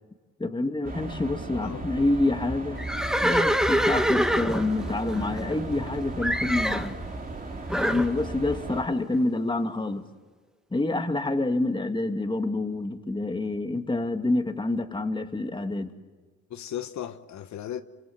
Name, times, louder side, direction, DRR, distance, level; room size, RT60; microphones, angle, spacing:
voice 1, 0.4-2.8 3.2-7.0 7.7-10.0 10.7-15.9, left 2 dB, 15° left, 2.1 m, -27 dB
sound 1, 0.8-8.8, right 2 dB, 30° right, 3.2 m, -36 dB
voice 2, 1.5-1.8 16.5-17.8, left 10 dB, 65° left, 1.1 m, -36 dB
Livestock farm animals working animals, 2.8-5.9 6.2-6.9 7.7-8.1, equal, ahead, 1.4 m, -25 dB
26.5 x 25.5 x 7.9 m
cardioid pair, 90°, 30 cm